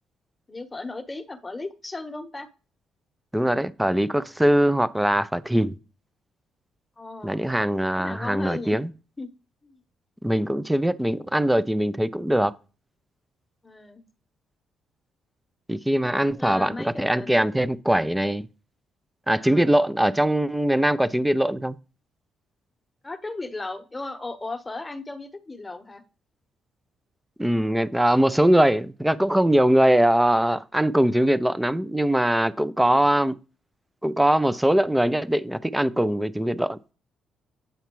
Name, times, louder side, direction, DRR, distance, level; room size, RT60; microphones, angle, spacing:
voice 1, 0.5-2.5 7.0-7.5 7.9-8.8 9.2-9.3 9.6-9.8 13.6-14.0 16.2-17.7 19.4-19.7 23.0-26.0, left 2 dB, 20° left, 1.1 m, -36 dB
voice 2, 3.3-5.7 7.2-8.9 10.2-12.5 15.7-18.4 19.3-21.8 27.4-33.4 34.0-36.8, right 1 dB, 10° right, 0.6 m, -21 dB
9.2 x 5.7 x 3.1 m
supercardioid pair, 55°, 0 cm